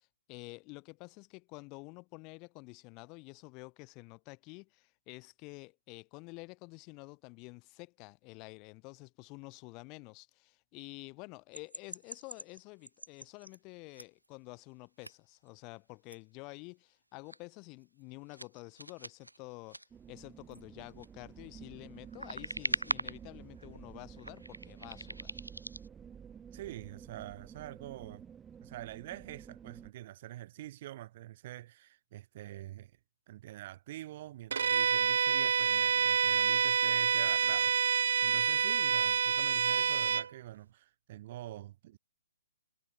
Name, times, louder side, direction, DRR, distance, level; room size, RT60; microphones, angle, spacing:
voice 1, 0.0-19.8 20.1-25.4 41.5-41.6, left 28 dB, 25° left, 0.8 m, -49 dB
sound 1, 11.5-13.6 13.9-14.3 15.0-15.1 15.5-15.6 16.1-16.2 17.3-17.4 17.8-18.0 18.3-19.9 20.5-21.1 21.8-23.3 23.6-23.8 24.2-25.9, right 1 dB, 85° right, 1.7 m, -41 dB
sound 2, 19.9-29.9, right 7 dB, 10° right, 2.9 m, -51 dB
voice 2, 26.5-28.2 28.6-32.9 33.3-42.0, right 14 dB, 35° right, 2.4 m, -46 dB
Bowed string instrument, 34.5-40.3, right 6 dB, 55° right, 0.4 m, -28 dB
figure-of-eight pair, 130°, 0 cm